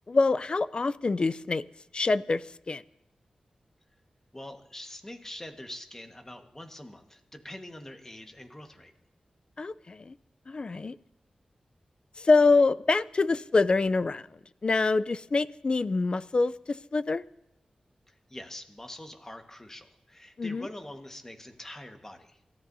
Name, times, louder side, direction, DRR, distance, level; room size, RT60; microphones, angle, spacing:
voice 1, 0.1-1.6 1.9-2.8 9.6-10.1 10.5-11.0 12.2-14.2 14.6-17.2 20.4-20.7, left 3 dB, 45° left, 16 dB, 0.5 m, -25 dB
voice 2, 4.3-8.9 18.1-22.4, left 1 dB, 20° left, 5 dB, 1.5 m, -44 dB
27.0 x 14.5 x 2.7 m, 0.79 s
wide cardioid pair, 70°, 2 cm